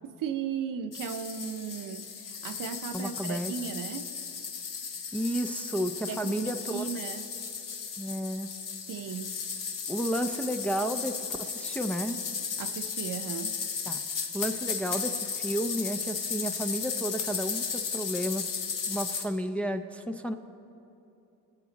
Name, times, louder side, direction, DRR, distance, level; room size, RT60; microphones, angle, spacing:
voice 1, 0.0-2.0 2.4-4.1 6.1-7.3 8.9-9.3 12.6-13.5, right 7 dB, 65° right, 9 dB, 0.8 m, -36 dB
sound 1, 0.9-19.2, left 6 dB, 60° left, 1.4 m, -35 dB
voice 2, 2.9-3.5 5.1-6.9 8.0-8.5 9.9-12.2 13.9-14.0 14.3-18.5 18.9-20.3, equal, 5° left, 6 dB, 0.5 m, -32 dB
24.5 x 8.2 x 4.0 m, 2.8 s
cardioid pair, 125°, 35 cm